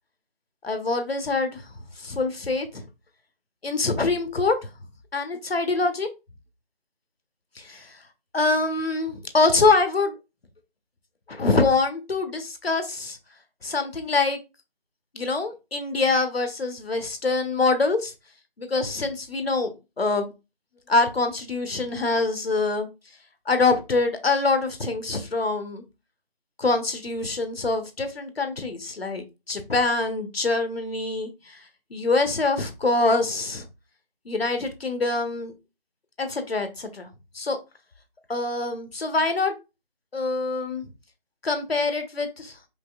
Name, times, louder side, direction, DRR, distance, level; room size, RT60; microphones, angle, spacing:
voice 1, 0.6-1.6 2.0-2.8 3.6-4.7 5.1-6.1 7.6-8.0 8.3-10.2 11.3-13.2 13.6-14.4 15.1-18.1 18.6-20.3 20.9-22.9 23.5-25.8 26.6-31.6 31.9-33.7 34.2-35.5 36.2-37.1 37.3-37.6 38.3-39.5 40.1-40.9 41.4-42.5, left 3 dB, 80° left, 7 dB, 1.1 m, -24 dB
5.2 x 2.9 x 2.4 m, 0.26 s
figure-of-eight pair, 165°, 30 cm